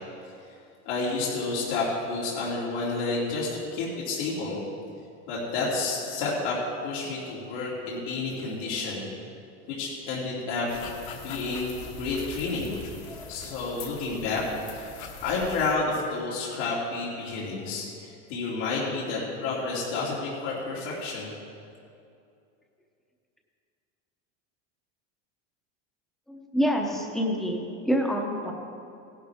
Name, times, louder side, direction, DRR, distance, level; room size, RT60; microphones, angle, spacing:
voice 1, 0.8-4.6 5.3-6.6 6.8-9.1 9.7-10.7 11.1-12.8 13.3-14.4 14.7-14.9 15.2-21.3, left 3 dB, 90° left, -7 dB, 3.0 m, -30 dB
sound 1, 10.7-15.8, left 5 dB, 55° left, 1.4 m, -42 dB
voice 2, 26.3-28.5, equal, ahead, 1 dB, 0.7 m, -27 dB
17.0 x 12.0 x 3.5 m, 2.6 s
cardioid pair, 175°, 34 cm